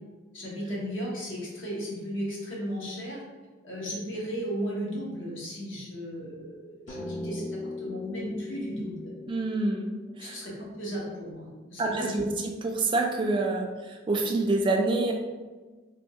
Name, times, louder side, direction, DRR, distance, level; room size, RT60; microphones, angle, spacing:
voice 1, 0.3-3.2 3.6-9.1 10.2-12.2, equal, 80° left, -4 dB, 1.1 m, -35 dB
sound 1, 6.9-11.5, left 2 dB, 40° left, 0.5 m, -40 dB
voice 2, 9.3-9.8 10.2-10.4 11.8-12.3 12.6-15.1, right 2 dB, 25° right, 1 dB, 0.3 m, -27 dB
3.5 x 2.3 x 2.7 m, 1.3 s
head